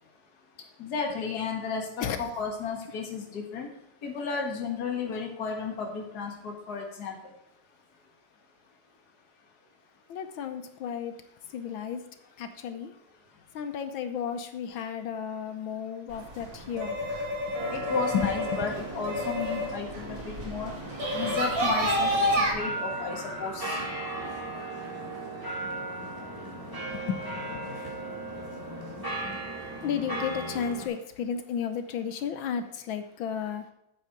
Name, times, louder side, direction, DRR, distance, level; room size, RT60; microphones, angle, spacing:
voice 1, 0.8-1.9 2.2-3.7 4.0-7.1 17.7-20.7 21.1-23.8, left 5 dB, 55° left, 1 dB, 2.0 m, -33 dB
voice 2, 10.1-11.2 11.5-12.1 12.4-12.9 13.5-17.1 18.1-18.7 26.9-28.2 29.0-29.4 29.8-33.7, left 7 dB, 80° left, 9 dB, 1.5 m, -33 dB
sound 1, 16.1-22.5, equal, 60° right, 3.4 m, -30 dB
sound 2, 17.5-30.9, right 2 dB, 10° right, 2.6 m, -37 dB
8.6 x 8.4 x 4.7 m, 0.85 s
omnidirectional pair, 2.2 m